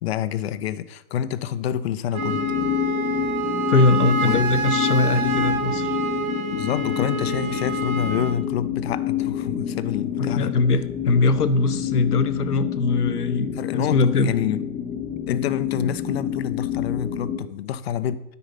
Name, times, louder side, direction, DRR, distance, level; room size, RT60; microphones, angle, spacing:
voice 1, 0.0-2.5 4.1-4.4 6.5-10.5 13.5-14.6 15.3-18.2, left 10 dB, 45° left, 0.5 m, -27 dB
Wind instrument woodwind instrument, 2.1-8.4, right 6 dB, 65° right, 1.2 m, -28 dB
sound 1, 2.2-17.4, left 10 dB, 15° left, 0.7 m, -28 dB
voice 2, 3.7-5.9 10.2-14.3, left 3 dB, 85° left, 0.8 m, -21 dB
9.2 x 5.1 x 5.6 m
figure-of-eight pair, 110°, 45 cm